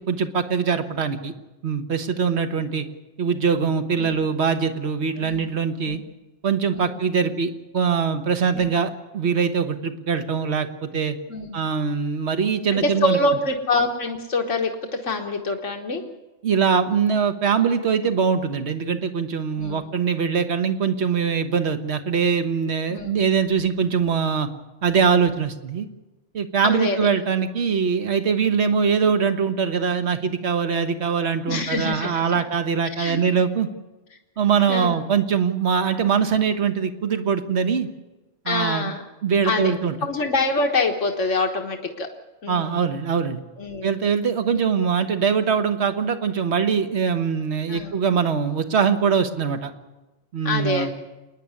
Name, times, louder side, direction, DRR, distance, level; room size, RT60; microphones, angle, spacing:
voice 1, 0.1-1.3 1.6-2.8 3.2-6.0 6.4-11.2 11.5-13.2 16.4-24.5 24.8-25.9 26.3-33.7 34.4-37.9 38.4-38.9 39.2-39.9 42.5-43.4 43.8-49.7 50.3-50.9, right 6 dB, 65° right, 8 dB, 1.5 m, -22 dB
voice 2, 5.2-5.5 5.9-6.0 6.7-7.0 8.6-8.7 11.3-11.6 12.7-16.0 19.6-19.8 22.9-23.2 26.6-27.1 31.5-32.3 32.8-33.2 34.7-35.0 38.5-39.0 39.4-39.7 40.0-42.1 42.4-42.8 43.6-43.9 47.7-48.0 50.5-50.9, left 2 dB, 90° left, 2 dB, 1.7 m, -25 dB
28.0 x 10.0 x 9.7 m, 1.1 s
omnidirectional pair, 1.2 m